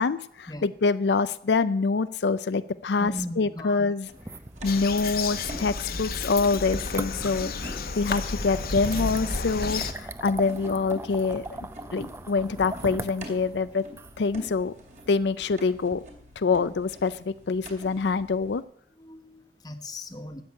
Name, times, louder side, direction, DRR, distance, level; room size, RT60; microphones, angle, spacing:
voice 1, 0.0-4.1 4.6-11.6 11.9-13.8 14.2-14.7 15.1-16.0 16.4-18.6, left 4 dB, 80° left, 14 dB, 0.5 m, -25 dB
voice 2, 3.0-3.9 10.7-10.8 19.0-20.4, left 1 dB, 20° left, 7 dB, 1.2 m, -38 dB
Barefoot Walking Footsteps on Wood, 4.0-8.1 9.1-18.6, equal, 40° right, 2.8 m, -47 dB
sound 1, 4.1-15.9, right 2 dB, 15° right, 0.4 m, -40 dB
Bird vocalization bird call bird song, 4.7-9.9, left 4 dB, 55° left, 1.0 m, -32 dB
13.0 x 8.0 x 8.5 m, 0.68 s
head